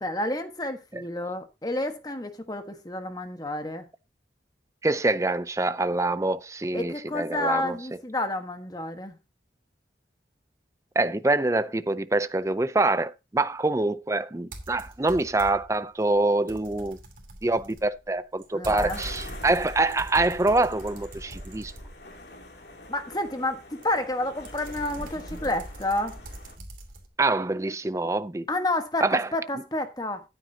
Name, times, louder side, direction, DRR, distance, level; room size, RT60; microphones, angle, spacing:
voice 1, 0.0-3.9 6.7-9.2 18.5-19.0 22.9-26.2 28.5-30.2, left 1 dB, 20° left, 1.3 m, -30 dB
voice 2, 4.8-7.8 11.0-17.0 17.4-21.7 27.2-28.4 29.0-29.3, right 2 dB, 15° right, 0.5 m, -25 dB
sound 1, 14.5-15.8 16.1-22.3 23.8-27.1, right 1 dB, 50° right, 2.8 m, -42 dB
sound 2, 18.9-26.6, left 2 dB, 70° left, 2.9 m, -46 dB
13.5 x 9.3 x 2.8 m
head